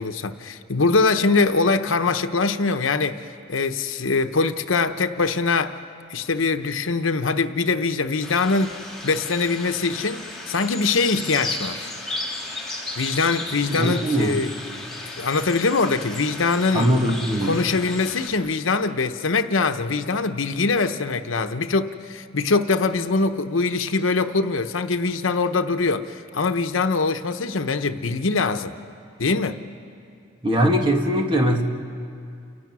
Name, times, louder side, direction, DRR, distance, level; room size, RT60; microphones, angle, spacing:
voice 1, 0.0-3.2 3.5-5.7 6.1-11.9 13.0-14.5 15.2-16.9 17.4-28.7 29.2-29.6, left 4 dB, 90° left, 8 dB, 0.9 m, -23 dB
sound 1, 8.2-18.3, left 2 dB, ahead, 3.7 m, -34 dB
voice 2, 13.7-14.4 16.7-17.6 30.4-31.6, equal, 25° right, 2 dB, 2.1 m, -21 dB
29.5 x 28.0 x 6.2 m, 2.4 s
head